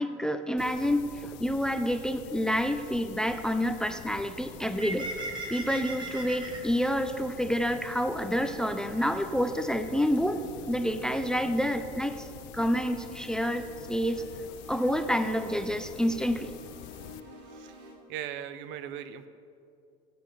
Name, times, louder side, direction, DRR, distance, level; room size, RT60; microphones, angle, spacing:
voice 1, 0.0-5.1 5.5-10.4 10.7-12.3 12.5-14.2 14.7-16.5, equal, 5° left, 9 dB, 0.5 m, -28 dB
sound 1, 0.6-17.2, left 12 dB, 60° left, 0.4 m, -46 dB
Bird, 4.5-11.8, right 2 dB, 20° right, 1.5 m, -43 dB
sound 2, 9.1-17.9, equal, 85° right, 1.6 m, -52 dB
voice 2, 17.5-19.3, right 10 dB, 60° right, 12 dB, 0.6 m, -39 dB
14.0 x 7.7 x 3.3 m, 2.5 s
hypercardioid pair, 70°, 21 cm